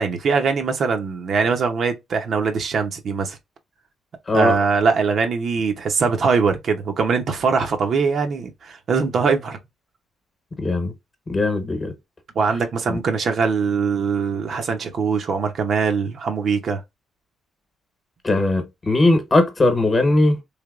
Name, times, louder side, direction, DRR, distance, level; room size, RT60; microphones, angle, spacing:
voice 1, 0.0-3.4 4.3-9.6 12.4-16.8, right 5 dB, 55° right, 0.7 m, -22 dB
voice 2, 4.3-4.6 10.6-10.9 11.3-11.9 12.9-13.0 18.2-20.4, left 2 dB, 30° left, 1.1 m, -19 dB
3.3 x 2.8 x 2.4 m
cardioid pair, 90°, 0 cm